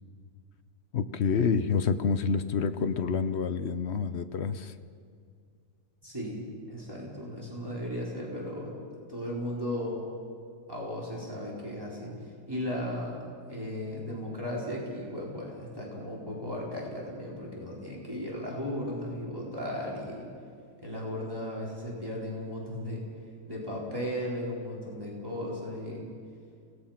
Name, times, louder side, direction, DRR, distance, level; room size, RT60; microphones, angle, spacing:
voice 1, 0.9-4.7, left 5 dB, 55° left, 11 dB, 0.8 m, -28 dB
voice 2, 6.0-6.4 6.7-8.8 9.0-10.0 10.7-12.1 12.5-13.2 13.5-20.3 20.8-23.0 23.5-26.1, left 1 dB, 10° right, -4 dB, 4.3 m, -36 dB
28.5 x 18.0 x 5.8 m, 2.2 s
omnidirectional pair, 1.9 m